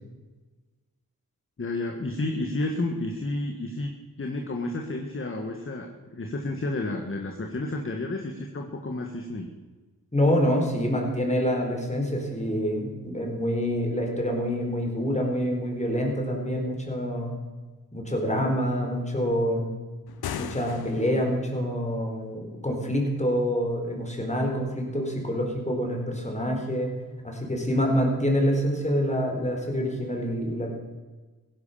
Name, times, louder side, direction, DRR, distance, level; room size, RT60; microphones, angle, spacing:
voice 1, 1.6-9.5, left 2 dB, 35° left, 3 dB, 1.7 m, -31 dB
voice 2, 10.1-17.3 17.9-19.7 20.4-26.9 27.2-30.7, equal, 20° left, 1 dB, 4.5 m, -26 dB
sound 1, 20.1-21.4, left 8 dB, 85° left, 1.0 m, -36 dB
16.0 x 11.0 x 6.9 m, 1.3 s
cardioid pair, 75°, 36 cm